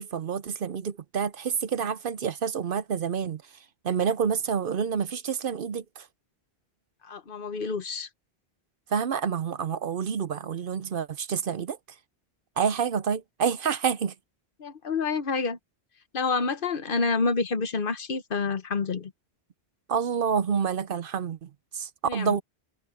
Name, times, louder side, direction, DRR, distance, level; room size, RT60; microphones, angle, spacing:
voice 1, 0.0-3.4 3.8-6.1 8.9-11.8 12.6-14.1 19.9-22.4, right 7 dB, 60° right, 0.8 m, -28 dB
voice 2, 7.0-8.1 14.6-15.6 16.1-19.1 22.1-22.4, left 4 dB, 55° left, 1.1 m, -28 dB
omnidirectional pair, 1.1 m